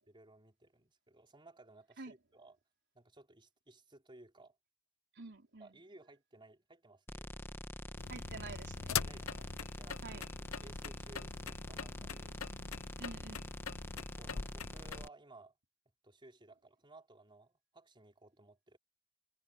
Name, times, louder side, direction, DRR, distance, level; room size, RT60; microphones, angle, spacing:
voice 1, 0.1-2.6 2.9-4.6 5.6-7.3 8.9-10.2 10.6-12.4 13.0-13.2 13.9-15.6 16.0-18.8, right 2 dB, 25° right, 4.8 m, -59 dB
voice 2, 5.2-5.7 8.1-8.8 10.0-10.2 13.0-13.5, right 3 dB, 55° right, 4.0 m, -48 dB
sound 1, 7.1-15.1, left 1 dB, 10° left, 2.2 m, -46 dB
sound 2, 8.0-15.1, left 7 dB, 70° left, 0.8 m, -43 dB
head